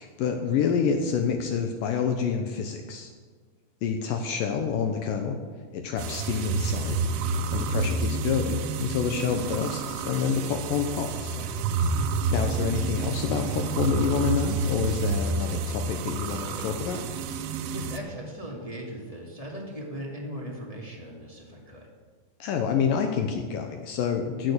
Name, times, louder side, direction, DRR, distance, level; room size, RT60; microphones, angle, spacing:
voice 1, 0.0-3.1 3.8-5.4 5.7-7.0 7.5-11.4 12.3-17.0 22.4-24.5, left 6 dB, 75° left, 5 dB, 2.3 m, -28 dB
sound 1, 6.0-18.0, right 4 dB, 85° right, 2.9 m, -29 dB
voice 2, 17.4-21.9, equal, 15° left, -3 dB, 1.4 m, -39 dB
16.0 x 8.8 x 6.7 m, 1.5 s
omnidirectional pair, 4.5 m